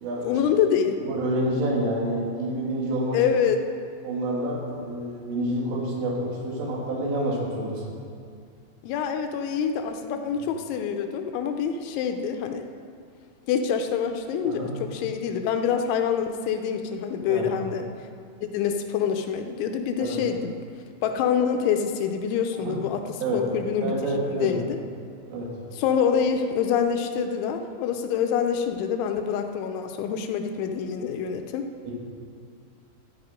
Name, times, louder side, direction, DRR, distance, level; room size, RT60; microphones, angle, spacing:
voice 1, 0.2-1.0 3.1-3.6 8.8-12.6 13.5-17.9 18.4-20.5 21.0-23.9 24.2-24.8 25.8-31.7, left 7 dB, 80° left, 6 dB, 3.0 m, -26 dB
voice 2, 1.0-3.2 4.0-7.8 14.4-14.8 17.3-17.5 20.0-20.2 22.5-22.8 23.2-23.4 23.8-24.6 25.3-25.5 31.9-32.0, right 1 dB, 85° right, -3 dB, 4.9 m, -28 dB
14.0 x 9.9 x 5.1 m, 2.3 s
omnidirectional pair, 5.6 m